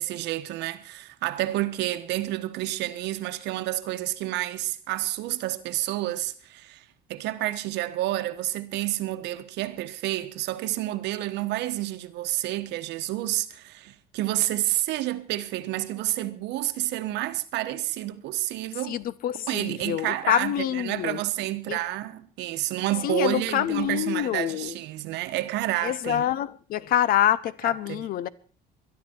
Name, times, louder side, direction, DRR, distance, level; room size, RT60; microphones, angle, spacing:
voice 1, 0.0-6.8 7.1-19.0 19.5-26.3 27.6-28.1, right 15 dB, 90° right, 1.2 m, -29 dB
voice 2, 18.9-21.2 21.7-21.8 23.0-24.8 25.8-28.3, left 11 dB, 60° left, 0.8 m, -26 dB
21.5 x 11.5 x 4.5 m
cardioid pair, 170°, 17 cm